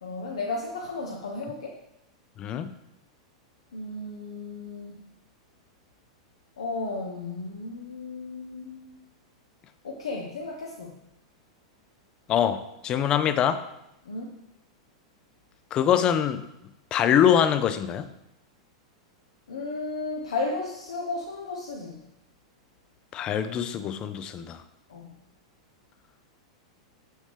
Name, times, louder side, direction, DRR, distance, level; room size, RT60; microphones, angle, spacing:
voice 1, 0.0-1.8 3.7-5.0 6.6-9.0 9.8-10.9 14.1-14.4 19.5-22.0 24.9-25.1, left 3 dB, 70° left, 0 dB, 0.7 m, -34 dB
voice 2, 2.4-2.7 12.3-13.6 15.7-16.4 16.9-18.1 23.1-24.6, left 9 dB, 30° left, 12 dB, 0.5 m, -24 dB
6.3 x 6.3 x 3.4 m, 0.86 s
figure-of-eight pair, 95°, 3 cm